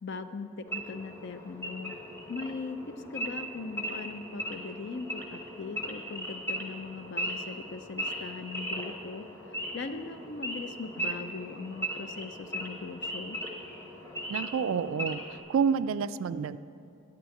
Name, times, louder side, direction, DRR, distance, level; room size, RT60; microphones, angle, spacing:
voice 1, 0.0-2.0 2.3-9.3 9.7-13.4, left 4 dB, 55° left, 10 dB, 0.5 m, -40 dB
Wild animals / Idling, 0.7-15.4, right 1 dB, 10° left, 0.9 m, -38 dB
voice 2, 14.3-15.2 15.5-16.6, right 6 dB, 65° right, 14 dB, 0.3 m, -28 dB
10.0 x 6.1 x 8.4 m, 2.6 s
head